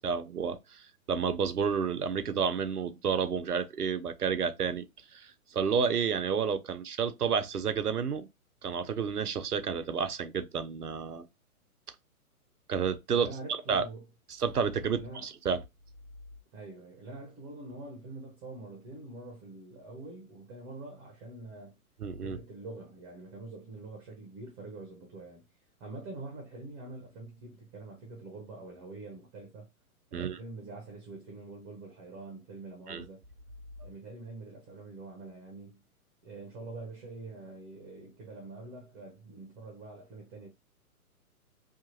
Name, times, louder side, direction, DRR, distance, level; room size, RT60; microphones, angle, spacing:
voice 1, 0.0-4.8 5.1-8.3 8.6-11.3 12.7-13.8 14.4-15.6 22.0-22.4 30.1-30.4 32.9-33.0, right 6 dB, 90° right, 0.6 m, -30 dB
voice 2, 13.1-14.1 14.9-15.3 16.5-21.8 22.2-25.5 25.8-29.7 30.1-33.2 33.8-35.8 36.2-40.5, right 2 dB, 25° right, 0.8 m, -45 dB
2.8 x 2.5 x 2.6 m
figure-of-eight pair, 120°, 44 cm